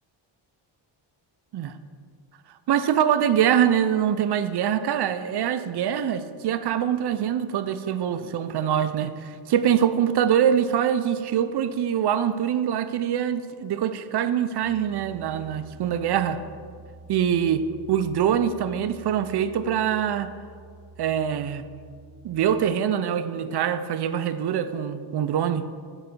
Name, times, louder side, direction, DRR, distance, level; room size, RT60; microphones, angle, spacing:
voice 1, 2.7-16.4 17.1-20.3 21.0-21.6 22.2-25.7, right 9 dB, 55° right, 11 dB, 0.5 m, -24 dB
Piano, 14.6-22.7, right 3 dB, 35° left, 1.7 m, -48 dB
9.1 x 4.0 x 6.6 m, 2.2 s
wide cardioid pair, 145°, 49 cm